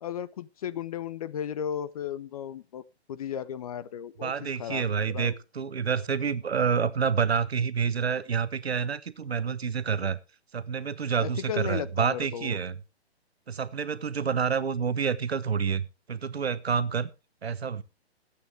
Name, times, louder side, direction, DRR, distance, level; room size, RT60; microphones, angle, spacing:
voice 1, 0.0-2.8 3.1-4.3 4.6-5.4 11.2-12.6, left 9 dB, 35° left, 16 dB, 0.6 m, -35 dB
voice 2, 4.2-10.2 10.5-12.8 13.5-17.1 17.4-17.8, right 6 dB, 70° right, 15 dB, 1.1 m, -28 dB
20.5 x 8.5 x 3.3 m, 0.29 s
figure-of-eight pair, 130°, 32 cm